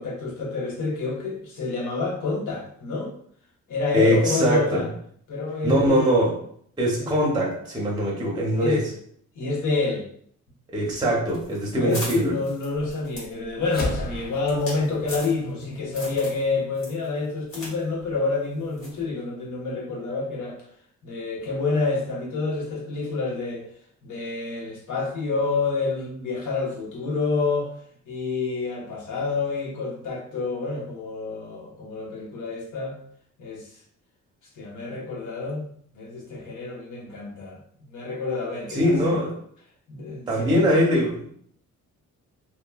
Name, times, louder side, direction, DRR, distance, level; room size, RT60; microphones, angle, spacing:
voice 1, 0.0-3.1 3.7-4.9 5.3-6.0 6.9-7.1 8.6-8.8 9.3-10.0 11.8-20.6 21.0-23.6 24.0-27.7 28.1-33.0 33.4-33.7 34.6-35.6 35.9-37.6 37.9-39.2 39.9-40.7, left 3 dB, 80° left, -4 dB, 1.0 m, -28 dB
voice 2, 3.9-4.8 5.6-6.4 6.8-8.8 10.7-12.3 38.7-39.4 40.3-41.3, equal, 15° right, -3 dB, 0.6 m, -22 dB
sound 1, 11.3-15.6 15.9-16.4 16.7-17.7 18.0-18.1 18.8-19.0, left 1 dB, 50° left, 1.3 m, -38 dB
sound 2, 13.7-18.3, left 1 dB, 30° left, 0.5 m, -36 dB
2.9 x 2.1 x 2.2 m, 0.62 s
cardioid pair, 135°, 30 cm